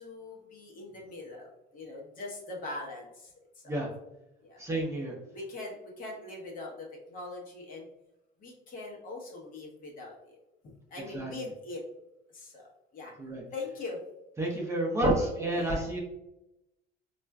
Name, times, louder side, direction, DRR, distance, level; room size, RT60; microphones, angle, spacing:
voice 1, 0.0-3.8 4.4-4.6 5.3-7.9 8.4-10.4 10.9-11.8 12.3-12.7 12.9-13.1 13.5-14.0 15.1-15.3 15.6-16.0, left 2 dB, 45° left, -2 dB, 1.0 m, -42 dB
voice 2, 4.6-5.1 11.1-11.3 13.2-13.4 14.4-16.0, right 1 dB, 15° right, -2 dB, 0.6 m, -29 dB
4.3 x 2.4 x 2.2 m, 0.91 s
cardioid pair, 120°, 19 cm